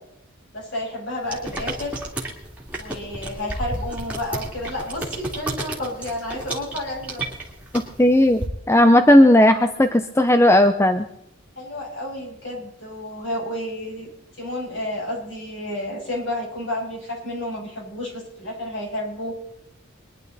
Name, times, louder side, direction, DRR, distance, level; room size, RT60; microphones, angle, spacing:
voice 1, 0.5-1.9 2.8-7.3 11.6-14.1 14.4-19.3, left 1 dB, 55° left, -3 dB, 6.8 m, -31 dB
sound 1, 1.3-8.5, right 1 dB, 5° right, 2.5 m, -32 dB
voice 2, 7.7-11.1, left 1 dB, 10° left, 8 dB, 0.5 m, -15 dB
23.0 x 11.0 x 4.1 m, 0.78 s
head